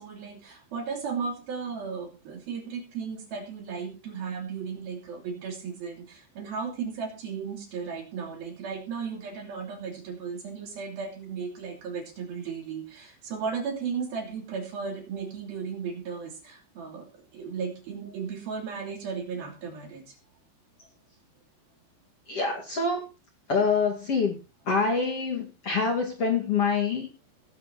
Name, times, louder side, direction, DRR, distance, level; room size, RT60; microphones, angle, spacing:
voice 1, 0.0-20.2, right 6 dB, 60° right, 3 dB, 4.2 m, -35 dB
voice 2, 22.3-23.0 23.5-24.3 24.7-27.1, left 4 dB, 40° left, 0 dB, 2.8 m, -26 dB
19.0 x 7.5 x 4.2 m, 0.29 s
omnidirectional pair, 5.1 m